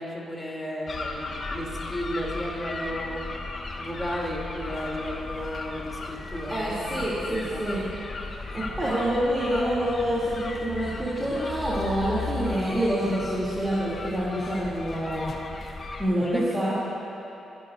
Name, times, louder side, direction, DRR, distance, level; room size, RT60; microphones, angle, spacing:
voice 1, 0.0-3.3 3.8-6.9 7.3-7.6 16.1-16.8, equal, 10° left, -2 dB, 3.1 m, -34 dB
sound 1, 0.9-16.1, left 3 dB, 50° left, 1.2 m, -36 dB
voice 2, 6.5-7.8 8.5-15.3 16.0-16.8, equal, 20° right, -10 dB, 3.1 m, -27 dB
26.5 x 10.5 x 2.7 m, 2.9 s
supercardioid pair, 50°, 0 cm